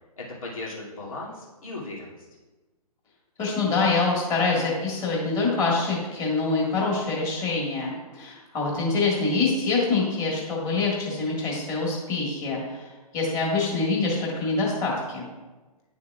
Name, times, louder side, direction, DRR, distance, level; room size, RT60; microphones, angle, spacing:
voice 1, 0.2-2.2, left 2 dB, 60° left, -4 dB, 2.5 m, -37 dB
voice 2, 3.4-12.9 13.1-15.3, left 3 dB, 15° left, -4 dB, 1.8 m, -25 dB
10.0 x 6.4 x 2.4 m, 1.2 s
hypercardioid pair, 140°, 20 cm